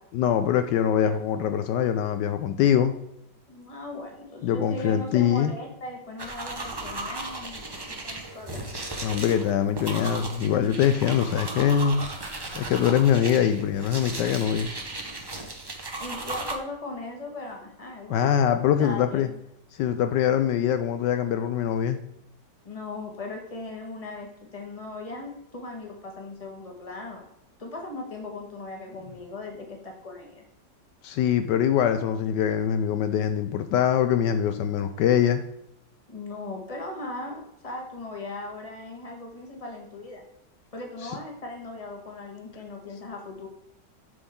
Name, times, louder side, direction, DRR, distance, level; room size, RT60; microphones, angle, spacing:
voice 1, 0.1-2.9 4.4-5.5 9.0-12.0 12.5-14.7 18.1-19.3 19.8-22.0 31.0-35.4, left 9 dB, 80° left, 8 dB, 1.2 m, -23 dB
voice 2, 3.5-8.7 16.0-18.5 18.8-19.4 22.6-27.3 27.6-30.4 36.1-40.2 40.7-43.5, left 2 dB, 20° left, 1 dB, 1.5 m, -38 dB
sound 1, 6.2-16.5, right 2 dB, 25° right, 0.6 m, -36 dB
7.9 x 6.2 x 3.7 m, 0.80 s
omnidirectional pair, 1.9 m